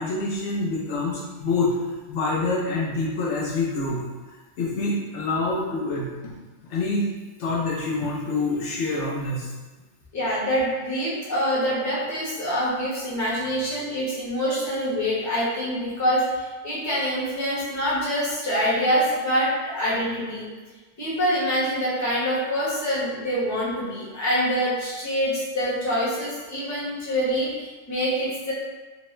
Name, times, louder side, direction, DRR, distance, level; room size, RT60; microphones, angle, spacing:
voice 1, 0.0-4.0 4.6-6.3 6.7-7.1 7.4-9.5, left 3 dB, 70° left, -4 dB, 0.8 m, -26 dB
voice 2, 10.1-20.5 21.0-28.5, equal, 15° left, -9 dB, 0.8 m, -25 dB
3.1 x 2.1 x 3.0 m, 1.3 s
omnidirectional pair, 1.3 m